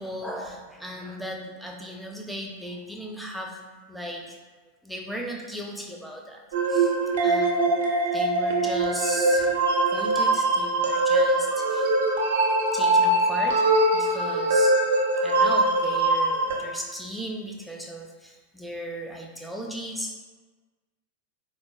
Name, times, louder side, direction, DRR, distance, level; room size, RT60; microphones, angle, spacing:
voice 1, 0.0-3.6 3.9-4.4 4.8-6.4 6.7-6.9 7.2-7.7 8.1-12.0 12.7-13.7 13.9-14.8 15.2-20.1, equal, ahead, 1 dB, 0.4 m, -36 dB
sound 1, 6.5-16.6, right 2 dB, 60° right, 0.5 m, -22 dB
3.9 x 2.2 x 2.2 m, 1.4 s
figure-of-eight pair, 90°, 0 cm